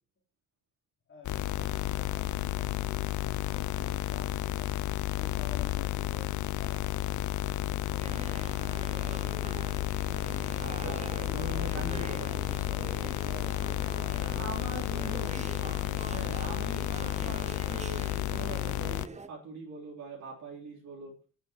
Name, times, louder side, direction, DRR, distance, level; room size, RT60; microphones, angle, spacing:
voice 1, 1.1-8.6 11.3-12.9 14.0-14.6, left 4 dB, 40° left, 2 dB, 4.1 m, -49 dB
sound 1, 1.2-19.1, left 15 dB, 75° left, 0.6 m, -32 dB
Cafe' Atmosphere, 8.0-19.3, right 4 dB, 25° right, 0.9 m, -44 dB
voice 2, 10.6-12.4 14.2-15.3 16.1-21.1, right 3 dB, 65° right, -2 dB, 3.7 m, -42 dB
11.0 x 7.6 x 4.6 m, 0.37 s
cardioid pair, 90°, 30 cm